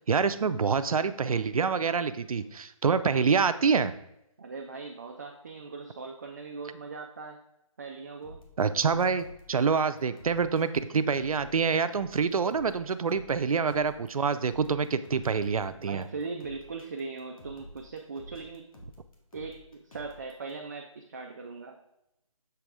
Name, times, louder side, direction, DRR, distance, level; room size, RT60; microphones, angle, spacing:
voice 1, 0.1-3.9 8.6-16.0, right 5 dB, 85° right, 12 dB, 0.5 m, -26 dB
voice 2, 4.4-7.4 7.8-8.4 13.3-13.4 15.7-18.7 19.3-21.8, right 4 dB, 30° right, 2 dB, 0.4 m, -40 dB
sound 1, 8.2-20.5, left 1 dB, 85° left, 1.8 m, -51 dB
6.9 x 3.4 x 4.8 m, 0.82 s
hypercardioid pair, 165°, 18 cm